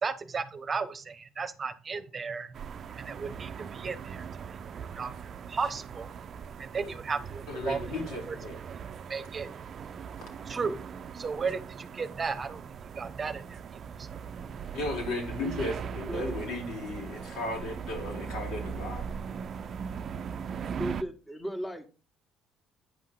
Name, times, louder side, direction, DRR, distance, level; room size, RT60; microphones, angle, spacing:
voice 1, 0.0-2.5 3.0-4.3 4.8-5.1 5.5-6.1 6.6-7.8 8.3-8.4 9.1-9.5 10.5-10.8 11.1-12.6 13.0-13.6 14.0-14.2, right 5 dB, 35° right, 0.9 m, -34 dB
sound 1, 2.5-21.0, right 7 dB, 50° right, 0.5 m, -40 dB
voice 2, 7.5-8.6 14.7-19.2, left 2 dB, 75° left, 3.5 m, -35 dB
voice 3, 16.1-16.6 20.8-21.9, equal, 10° left, 1.6 m, -36 dB
9.4 x 5.6 x 3.8 m
supercardioid pair, 85°, 0 cm